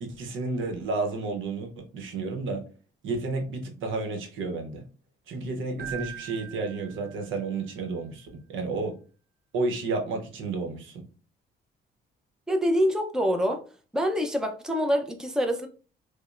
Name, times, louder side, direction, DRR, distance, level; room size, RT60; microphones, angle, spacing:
voice 1, 0.0-2.6 3.0-4.8 5.3-8.9 9.5-11.0, right 3 dB, 80° right, 0.8 m, -31 dB
Keyboard (musical), 5.8-7.6, right 10 dB, 50° right, 1.1 m, -41 dB
voice 2, 12.5-13.6 13.9-15.7, equal, 5° right, 0.5 m, -25 dB
5.0 x 2.1 x 2.5 m
cardioid pair, 90°, 20 cm